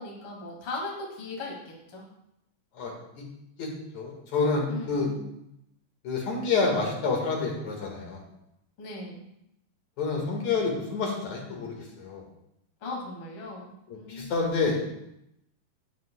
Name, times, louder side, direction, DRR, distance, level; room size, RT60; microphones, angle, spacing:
voice 1, 0.0-2.0 4.7-5.2 8.8-9.2 12.8-14.3, left 2 dB, 40° left, -2 dB, 2.6 m, -38 dB
voice 2, 2.7-3.3 3.6-3.7 3.9-5.1 6.0-8.2 10.0-12.2 13.9-14.9, left 4 dB, 60° left, 0 dB, 2.9 m, -28 dB
17.0 x 7.5 x 2.3 m, 0.82 s
omnidirectional pair, 4.0 m